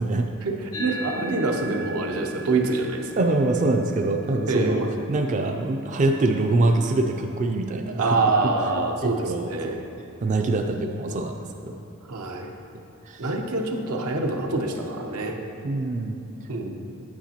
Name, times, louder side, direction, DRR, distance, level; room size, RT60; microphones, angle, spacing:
voice 1, 0.4-3.1 4.5-4.9 8.0-9.8 12.1-12.5 13.2-15.4 16.5-16.7, right 3 dB, 85° right, 2 dB, 0.8 m, -25 dB
sound 1, 0.7-9.5, equal, 80° left, 0.9 m, -40 dB
voice 2, 3.2-4.8 5.1-8.2 9.0-9.8 10.2-11.4 11.6-11.7 13.0-13.3 15.6-16.5, right 2 dB, 35° right, 4 dB, 0.3 m, -24 dB
8.7 x 8.1 x 2.9 m, 2.7 s
head